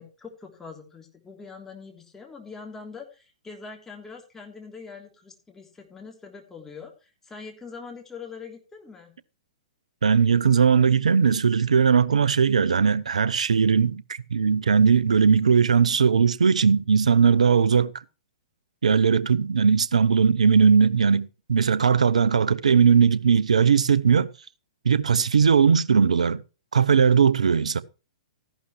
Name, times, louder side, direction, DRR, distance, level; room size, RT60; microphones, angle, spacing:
voice 1, 0.0-9.2, left 5 dB, 10° left, 3.3 m, -43 dB
voice 2, 10.0-17.9 18.8-24.3 24.8-26.4 26.7-27.8, right 6 dB, 75° right, 0.8 m, -19 dB
14.5 x 11.5 x 3.2 m
figure-of-eight pair, 115°, 4 cm